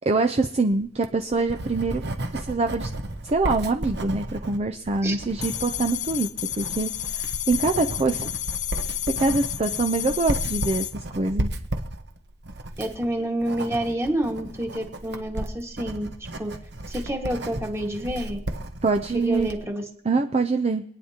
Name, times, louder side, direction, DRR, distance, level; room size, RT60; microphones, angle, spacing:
voice 1, 0.1-2.0 2.3-2.9 3.2-6.3 6.5-8.3 9.2-11.5 18.8-19.5 20.0-20.8, right 3 dB, 35° right, 6 dB, 0.5 m, -24 dB
Writing, 0.9-19.6, right 1 dB, 60° right, 1.0 m, -34 dB
sound 1, 5.4-10.9, left 12 dB, 40° left, 0.5 m, -31 dB
voice 2, 12.8-16.1 16.4-16.5 16.9-18.4 19.1-19.8, right 1 dB, 15° right, 3 dB, 1.7 m, -28 dB
26.0 x 9.6 x 2.9 m, 0.72 s
head